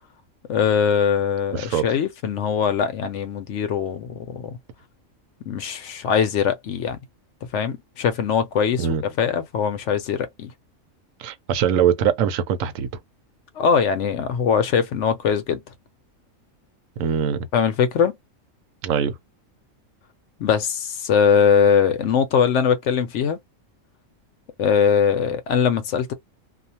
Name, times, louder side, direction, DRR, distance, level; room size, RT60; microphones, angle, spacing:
voice 1, 0.5-4.6 5.5-7.0 7.5-8.9 9.2-10.5 13.6-15.6 17.5-18.2 20.4-23.4 24.6-26.1, left 7 dB, 65° left, 0.9 m, -21 dB
voice 2, 1.5-1.8 8.8-9.0 11.2-12.9 17.0-17.5 18.8-19.1, right 8 dB, 80° right, 1.0 m, -22 dB
2.4 x 2.2 x 2.7 m
omnidirectional pair, 1.4 m